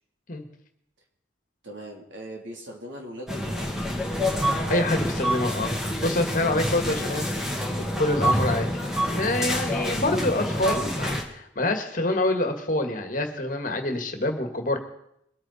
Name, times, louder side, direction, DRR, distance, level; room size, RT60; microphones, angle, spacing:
voice 1, 1.6-3.6 6.8-7.4, equal, 85° right, 0 dB, 3.4 m, -40 dB
sound 1, 3.3-11.2, equal, 5° right, 1.8 m, -27 dB
voice 2, 4.7-5.8 6.0-7.2 8.0-8.7 9.1-14.8, left 2 dB, 45° left, 5 dB, 1.7 m, -26 dB
22.5 x 8.9 x 4.3 m, 0.74 s
head